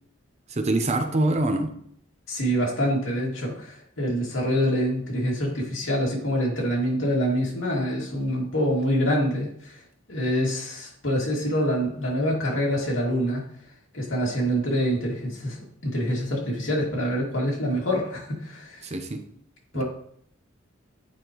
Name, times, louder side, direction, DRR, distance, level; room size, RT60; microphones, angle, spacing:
voice 1, 0.5-1.7 18.8-19.2 19.7-19.8, right 2 dB, 35° right, 5 dB, 0.7 m, -25 dB
voice 2, 2.3-9.8 10.1-13.4 13.9-15.6 15.8-18.8 19.7-19.8, equal, 75° left, -3 dB, 2.4 m, -26 dB
8.8 x 4.8 x 3.1 m, 0.66 s
head